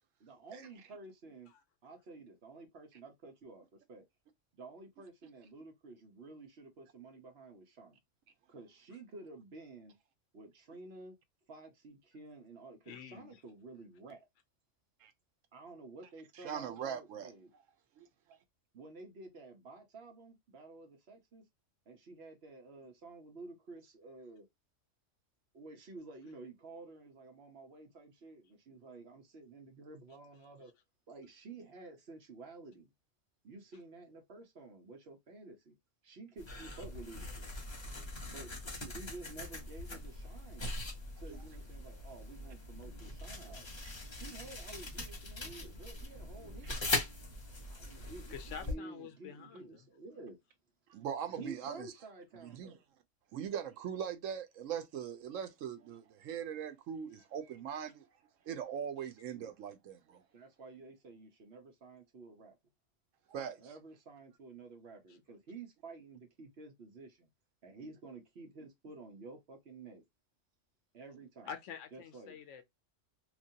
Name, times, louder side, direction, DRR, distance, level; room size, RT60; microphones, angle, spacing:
voice 1, 0.2-1.5 1.8-4.0 4.5-8.0 8.5-9.9 10.3-11.2 11.5-14.2 15.5-17.5 18.7-21.4 21.9-24.5 25.5-30.7 31.1-32.9 33.4-35.7 36.0-37.5 38.2-40.7 41.2-43.8 44.1-46.8 47.7-50.4 51.3-52.8 60.3-62.6 63.4-67.3 67.6-70.0 70.9-71.5 71.9-72.4, right 3 dB, 60° right, 1.1 m, -51 dB
voice 2, 12.9-13.3 48.3-49.8 71.5-72.6, left 7 dB, 75° left, 0.9 m, -47 dB
voice 3, 16.4-17.3 18.0-18.4 41.3-41.4 46.6-46.8 50.9-51.7 52.4-52.8 53.3-58.0 58.5-60.2 63.3-63.6, right 8 dB, 85° right, 1.0 m, -41 dB
sound 1, 36.4-48.7, left 2 dB, 25° left, 0.8 m, -41 dB
3.0 x 2.5 x 2.7 m
omnidirectional pair, 1.3 m